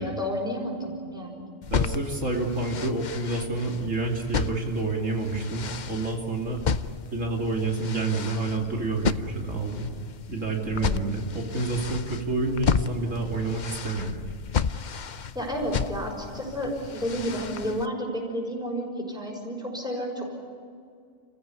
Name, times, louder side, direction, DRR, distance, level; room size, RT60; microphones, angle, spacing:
voice 1, 0.0-1.4 10.7-11.1 15.3-20.4, equal, 5° right, -1 dB, 6.0 m, -31 dB
sound 1, 1.6-17.9, left 6 dB, 45° left, 0.7 m, -33 dB
voice 2, 1.7-6.6 7.1-9.9 10.3-14.3, right 3 dB, 85° right, 0 dB, 3.0 m, -28 dB
29.5 x 15.5 x 9.7 m, 2.3 s
omnidirectional pair, 1.3 m